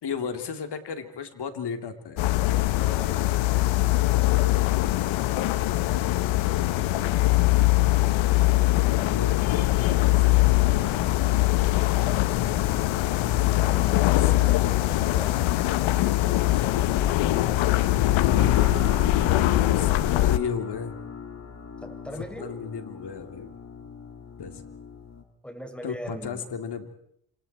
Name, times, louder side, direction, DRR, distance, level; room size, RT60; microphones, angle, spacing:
voice 1, 0.0-2.3 8.7-11.0 14.2-14.8 17.9-18.1 19.5-21.0 22.4-23.5 24.4-24.6 25.8-26.9, left 6 dB, 60° left, 7 dB, 3.5 m, -35 dB
sound 1, 2.2-20.4, left 17 dB, 85° left, 1.3 m, -22 dB
voice 2, 2.7-3.4 11.7-12.2 13.4-16.7 21.8-22.5 25.4-26.5, equal, ahead, 5 dB, 5.7 m, -41 dB
sound 2, 18.4-25.2, left 4 dB, 35° left, 5.0 m, -38 dB
29.0 x 26.5 x 4.5 m, 0.71 s
supercardioid pair, 65°, 46 cm